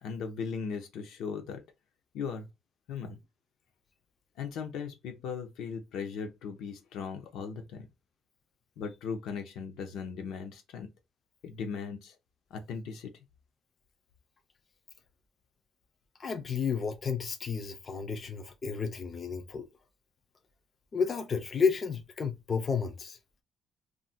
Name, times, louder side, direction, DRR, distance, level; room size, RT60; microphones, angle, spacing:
voice 1, 0.0-1.6 2.1-2.5 2.9-3.2 4.4-7.9 8.8-10.9 11.4-12.1 12.5-13.1, left 6 dB, 85° left, 0.6 m, -38 dB
voice 2, 16.2-19.7 20.9-23.2, left 5 dB, 30° left, 0.3 m, -31 dB
2.4 x 2.1 x 3.9 m
cardioid pair, 175°, 0 cm